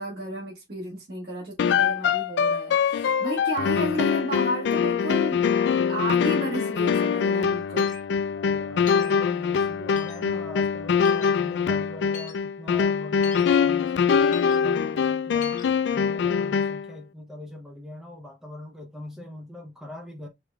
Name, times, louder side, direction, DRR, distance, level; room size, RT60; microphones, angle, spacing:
voice 1, 0.0-5.4 5.9-7.9, right 1 dB, 65° right, 1.5 m, -32 dB
sound 1, 1.6-16.9, left 6 dB, 80° left, 0.3 m, -23 dB
sound 2, 7.8-8.0 8.9-9.1 10.0-10.2 11.0-11.3 12.1-12.3 13.2-13.4 14.3-14.6 15.4-15.6, left 7 dB, 45° left, 1.1 m, -39 dB
voice 2, 8.3-15.6 15.9-20.3, left 1 dB, 5° right, 0.7 m, -42 dB
4.8 x 3.6 x 2.3 m
head